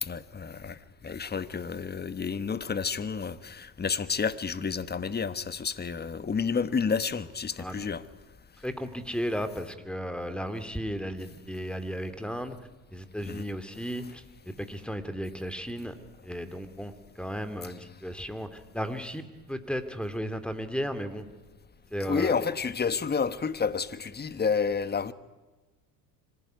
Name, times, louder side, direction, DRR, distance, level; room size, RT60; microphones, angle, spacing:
voice 1, 0.0-8.0 13.2-13.5 14.0-14.1 17.6-17.7 22.0-25.1, left 5 dB, 20° left, 1.3 m, -30 dB
voice 2, 8.6-12.6 12.9-15.9 16.2-16.9 17.2-21.2 21.9-22.3, equal, ahead, 2.7 m, -34 dB
25.5 x 17.0 x 9.4 m
hypercardioid pair, 75°, 47 cm